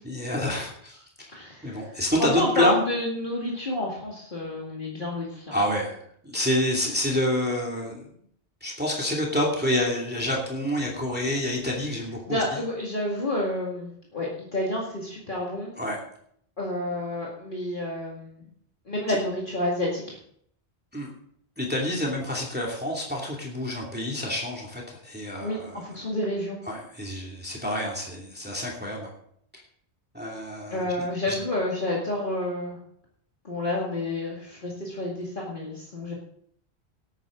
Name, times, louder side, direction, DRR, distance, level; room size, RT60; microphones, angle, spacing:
voice 1, 0.0-1.3 1.6-2.8 5.5-6.0 6.2-8.1 8.6-12.6 15.8-16.0 20.9-21.1 21.6-25.8 26.6-29.1 30.1-30.9 31.3-31.4, left 1 dB, 10° right, -3 dB, 2.6 m, -28 dB
voice 2, 1.3-5.6 12.3-15.7 16.6-18.5 18.9-20.2 25.4-26.6 30.7-32.8 33.4-36.1, left 1 dB, 50° left, -4 dB, 2.5 m, -29 dB
18.5 x 9.1 x 3.9 m, 0.66 s
omnidirectional pair, 1.1 m